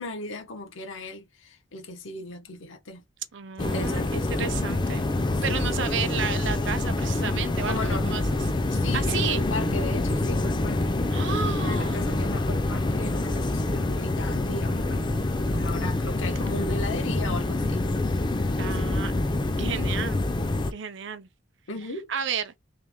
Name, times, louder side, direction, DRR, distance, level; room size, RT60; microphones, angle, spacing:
voice 1, 0.0-3.0 3.6-4.7 5.5-5.6 7.7-8.1 8.7-11.0 11.3-15.1 15.5-17.8 18.6-18.9 19.7-20.1 21.7-22.1, left 2 dB, 80° left, 1.0 m, -37 dB
voice 2, 3.3-8.2 8.7-9.4 11.1-12.0 18.6-19.1 19.6-20.2 20.7-21.3 22.1-22.5, right 7 dB, 60° right, 0.5 m, -32 dB
sound 1, 3.6-20.7, left 2 dB, 25° left, 0.5 m, -26 dB
3.3 x 3.0 x 3.5 m
head